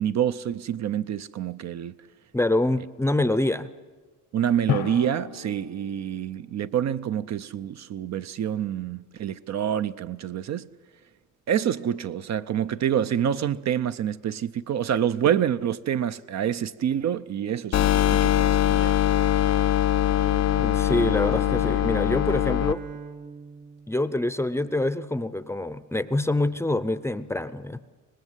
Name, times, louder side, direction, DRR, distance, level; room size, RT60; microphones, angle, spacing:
voice 1, 0.0-1.9 4.3-10.7 11.5-19.0, right 9 dB, 55° right, 0.6 m, -27 dB
voice 2, 2.3-3.7 20.6-22.8 23.9-27.8, left 1 dB, 10° left, 0.6 m, -25 dB
Drum, 4.7-7.0, left 11 dB, 90° left, 1.2 m, -32 dB
sound 1, 17.7-22.7, left 12 dB, 55° left, 0.6 m, -22 dB
Bowed string instrument, 20.0-24.9, right 5 dB, 75° right, 2.5 m, -41 dB
24.5 x 19.5 x 8.1 m
cardioid pair, 125°, 32 cm